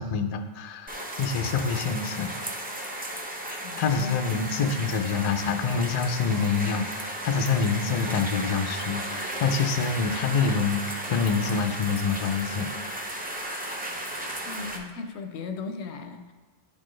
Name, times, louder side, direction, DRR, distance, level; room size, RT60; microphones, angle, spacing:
voice 1, 0.0-2.3 3.5-13.0 13.6-13.8, left 5 dB, 50° left, 6 dB, 0.5 m, -27 dB
sound 1, 0.9-14.8, right 1 dB, 10° right, 0.4 m, -35 dB
voice 2, 3.6-4.9 14.5-16.3, left 4 dB, 90° left, 6 dB, 0.9 m, -37 dB
10.5 x 4.3 x 3.1 m, 1.3 s
omnidirectional pair, 1.1 m